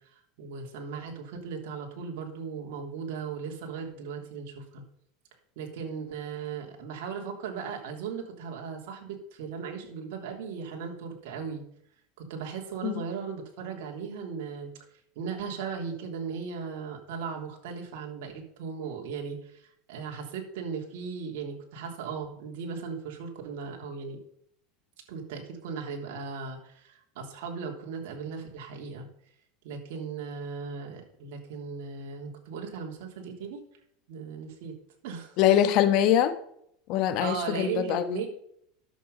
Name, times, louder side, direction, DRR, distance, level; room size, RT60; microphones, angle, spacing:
voice 1, 0.0-4.8 5.5-11.6 12.2-14.7 15.1-24.2 25.1-29.1 29.6-33.6 34.1-34.7 35.0-35.4 37.2-38.3, right 6 dB, 75° right, 1 dB, 3.2 m, -37 dB
voice 2, 35.4-36.4 36.9-38.3, left 10 dB, 55° left, 10 dB, 1.4 m, -23 dB
11.0 x 7.6 x 5.4 m, 0.69 s
supercardioid pair, 115°, 0 cm